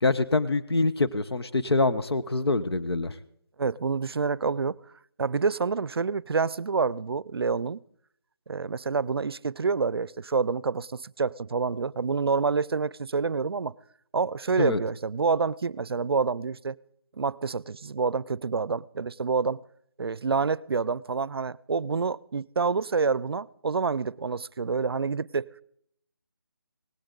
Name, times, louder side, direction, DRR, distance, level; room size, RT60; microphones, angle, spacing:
voice 1, 0.0-3.1 14.6-14.8, left 3 dB, 85° left, 1.0 m, -25 dB
voice 2, 3.6-4.8 5.2-7.8 8.5-13.7 14.1-16.8 17.2-19.6 20.0-25.5, right 5 dB, 75° right, 0.5 m, -27 dB
18.0 x 17.0 x 3.9 m
figure-of-eight pair, 180°, 13 cm